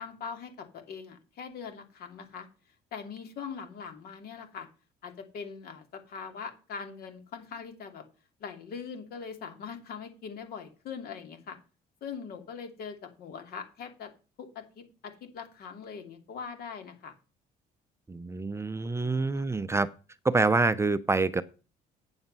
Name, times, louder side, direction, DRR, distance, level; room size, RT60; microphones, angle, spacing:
voice 1, 0.0-2.5 2.9-4.7 5.0-8.0 8.4-11.6 12.0-14.1 14.4-17.1 19.0-19.4, left 6 dB, 65° left, 6 dB, 2.7 m, -42 dB
voice 2, 18.1-19.9 20.2-21.4, right 3 dB, 15° right, 13 dB, 0.5 m, -26 dB
8.8 x 7.2 x 5.5 m, 0.33 s
cardioid pair, 110°, 17 cm